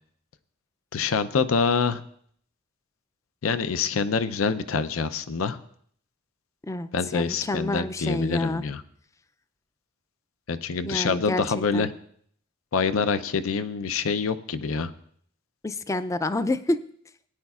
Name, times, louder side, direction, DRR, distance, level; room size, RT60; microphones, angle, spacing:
voice 1, 0.9-2.0 3.4-5.6 6.9-8.8 10.5-11.9 12.7-14.9, left 5 dB, 85° left, 13 dB, 0.5 m, -26 dB
voice 2, 6.7-8.6 10.8-11.9 15.6-16.8, left 2 dB, 15° left, 13 dB, 0.3 m, -28 dB
18.0 x 9.6 x 2.4 m, 0.63 s
head